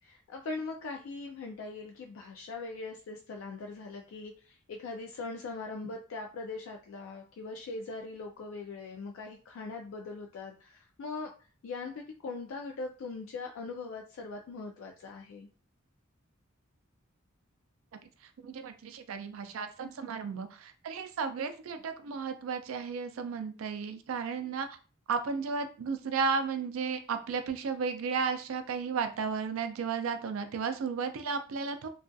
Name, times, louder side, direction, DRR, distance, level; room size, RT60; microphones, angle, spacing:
voice 1, 0.0-11.3 11.6-15.5, left 3 dB, 75° left, 2 dB, 0.3 m, -41 dB
voice 2, 18.4-24.7 25.1-31.9, right 5 dB, 85° right, 9 dB, 0.4 m, -34 dB
2.3 x 2.2 x 2.5 m, 0.37 s
head